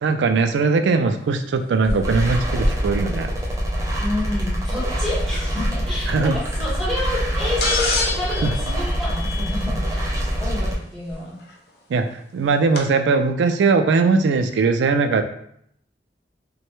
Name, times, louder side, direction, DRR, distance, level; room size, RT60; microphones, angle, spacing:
voice 1, 0.0-3.3 6.1-6.3 8.4-8.5 11.9-12.1 12.3-15.2, right 4 dB, 85° right, 7 dB, 0.3 m, -19 dB
sound 1, 1.3-11.4, equal, 65° right, 0.8 m, -34 dB
sound 2, 2.0-10.7, equal, 15° right, 0.5 m, -25 dB
voice 2, 4.0-11.3, left 1 dB, ahead, -8 dB, 1.3 m, -29 dB
sound 3, 7.6-9.9 11.5-11.6 12.8-12.9, left 4 dB, 60° left, 0.5 m, -26 dB
3.1 x 2.2 x 3.0 m, 0.68 s
head